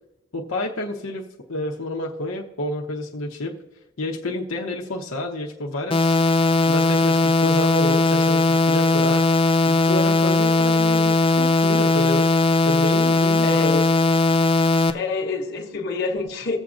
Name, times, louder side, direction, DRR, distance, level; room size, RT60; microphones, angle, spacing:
voice 1, 0.3-3.6 4.0-6.2 6.7-9.3 9.7-12.3 12.6-13.8, left 1 dB, 85° left, 0.8 m, -29 dB
sound 1, 5.9-14.9, left 3 dB, 25° left, 0.4 m, -18 dB
voice 2, 13.4-13.9 14.9-16.6, left 3 dB, 55° left, 1.0 m, -27 dB
19.0 x 7.2 x 2.5 m
head